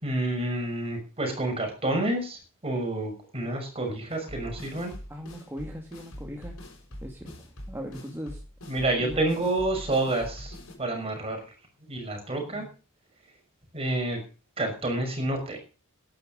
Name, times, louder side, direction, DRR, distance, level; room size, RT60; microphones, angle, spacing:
voice 1, 0.0-5.0 8.7-11.5 11.9-12.7 13.7-14.2 14.6-15.6, right 2 dB, 25° right, 3 dB, 6.0 m, -29 dB
sound 1, 4.1-10.8, equal, 65° left, 6.6 m, -43 dB
voice 2, 5.1-6.6 7.0-8.4 9.0-9.4 12.4-12.7, equal, 10° right, 1 dB, 2.4 m, -39 dB
12.0 x 10.5 x 6.7 m, 0.36 s
head